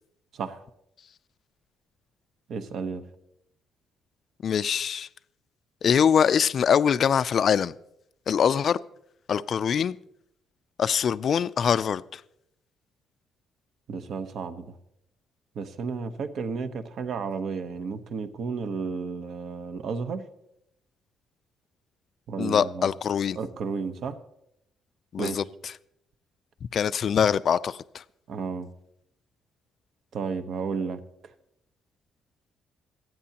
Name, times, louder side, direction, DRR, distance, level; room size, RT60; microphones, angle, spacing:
voice 1, 2.5-3.0 13.9-14.7 15.5-20.2 22.3-22.9 23.3-24.2 25.2-25.4 28.3-28.7 30.1-31.0, right 5 dB, 60° right, 1.0 m, -32 dB
voice 2, 4.4-5.1 5.8-7.7 8.3-8.8 9.3-10.0 10.8-12.2 22.4-23.4 25.1-25.4 26.7-28.0, left 7 dB, 50° left, 0.4 m, -23 dB
28.0 x 9.4 x 2.9 m
cardioid pair, 115°, 0 cm